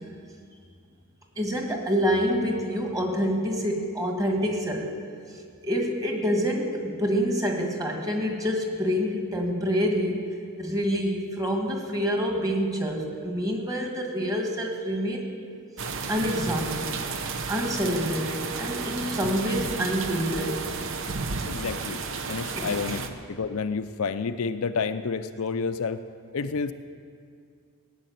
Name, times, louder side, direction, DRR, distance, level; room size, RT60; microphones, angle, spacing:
voice 1, 1.4-4.9 5.6-10.2 10.6-15.3 16.1-16.9 17.5-20.6 22.6-23.0, equal, 15° right, 1 dB, 1.7 m, -27 dB
sound 1, 15.8-23.1, right 4 dB, 60° right, 0.9 m, -32 dB
voice 2, 21.4-22.0 22.3-23.0 23.3-26.0 26.3-26.7, left 5 dB, 70° left, 10 dB, 0.5 m, -29 dB
17.5 x 7.5 x 9.3 m, 2.2 s
head